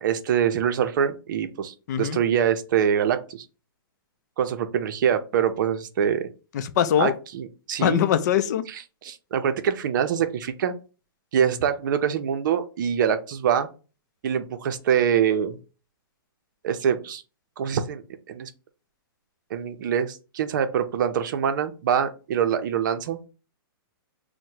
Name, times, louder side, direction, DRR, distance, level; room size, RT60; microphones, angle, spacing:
voice 1, 0.0-3.4 4.4-6.2 7.0-8.0 9.0-10.7 11.3-13.7 14.2-15.6 16.6-17.2 17.6-18.5 19.5-23.3, right 8 dB, 55° right, 0.6 m, -24 dB
voice 2, 1.9-2.2 6.5-7.1 7.8-8.6, left 10 dB, 45° left, 0.4 m, -22 dB
6.1 x 2.1 x 2.8 m
hypercardioid pair, 155°, 13 cm